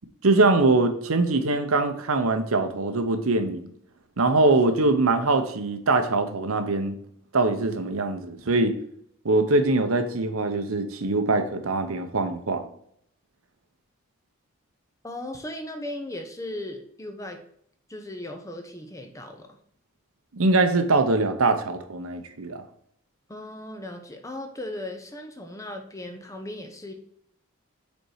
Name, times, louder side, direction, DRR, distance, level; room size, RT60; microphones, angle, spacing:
voice 1, 0.2-3.7 4.2-7.0 7.3-8.8 9.2-12.7 20.3-22.6, right 3 dB, 85° right, 8 dB, 0.8 m, -22 dB
voice 2, 15.0-17.4 17.9-19.6 23.3-26.9, left 1 dB, 15° left, 5 dB, 0.7 m, -37 dB
5.3 x 4.5 x 4.8 m, 0.68 s
head